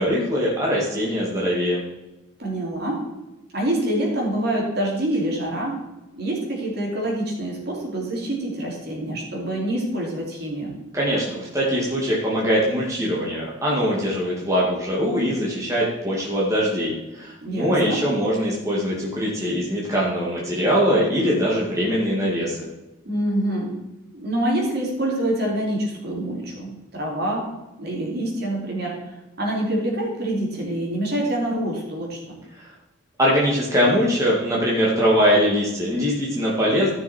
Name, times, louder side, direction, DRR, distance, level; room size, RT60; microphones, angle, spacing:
voice 1, 0.0-1.8 10.9-22.6 32.6-32.7 33.2-36.9, equal, 15° right, -5 dB, 2.1 m, -22 dB
voice 2, 2.4-3.0 3.5-5.8 6.1-10.8 17.4-18.0 23.0-23.7 24.1-27.5 27.8-32.4, right 1 dB, 50° right, -2 dB, 3.1 m, -26 dB
14.0 x 6.4 x 4.4 m, 1.0 s
head